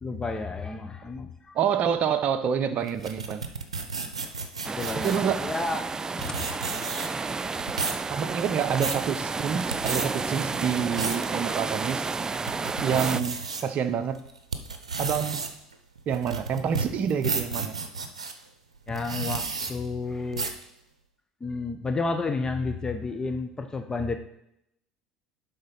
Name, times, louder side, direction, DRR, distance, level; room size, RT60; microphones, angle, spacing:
voice 1, 0.0-1.6 4.6-5.8 6.2-6.5 8.0-8.2 18.9-19.4 19.7-20.5 21.4-24.2, left 3 dB, 20° left, 6 dB, 0.9 m, -31 dB
voice 2, 1.5-3.4 4.9-5.5 8.1-12.1 12.8-13.4 13.6-14.2 15.0-15.4 16.1-17.8, right 7 dB, 45° right, 9 dB, 0.7 m, -27 dB
sound 1, 2.9-5.3 5.9-6.0 6.2-7.3 7.6-8.0 8.5-9.0 9.6-10.1 10.6-11.3 11.8-11.9 12.3-13.6 14.1-18.3 18.9-19.7 20.3-20.6, right 4 dB, 85° right, 0.6 m, -32 dB
sound 2, 4.6-13.2, right 4 dB, 20° right, 0.3 m, -31 dB
10.5 x 3.9 x 5.5 m, 0.78 s
figure-of-eight pair, 65°, 3 cm